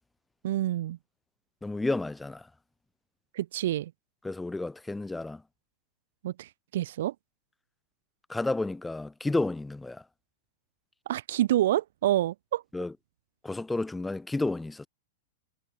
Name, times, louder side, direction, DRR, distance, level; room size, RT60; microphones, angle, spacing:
voice 1, 0.4-1.0 3.3-3.9 6.2-7.1 11.1-12.6, right 13 dB, 60° right, 2.4 m, -28 dB
voice 2, 1.6-2.5 4.2-5.4 8.3-10.0 12.7-12.9 13.4-14.9, left 2 dB, 5° left, 1.9 m, -31 dB
figure-of-eight pair, 100°, 0 cm